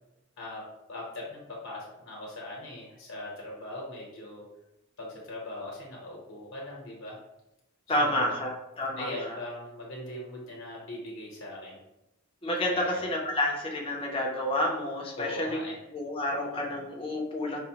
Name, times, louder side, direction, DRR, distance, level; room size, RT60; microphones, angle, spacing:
voice 1, 0.4-4.4 5.0-7.2 7.9-8.4 9.0-11.8 12.6-13.0 15.2-15.8, left 1 dB, 70° left, -3 dB, 0.9 m, -40 dB
voice 2, 7.9-9.4 12.4-15.6 15.9-17.6, left 1 dB, 25° left, -1 dB, 0.5 m, -29 dB
4.9 x 2.1 x 2.8 m, 0.92 s
head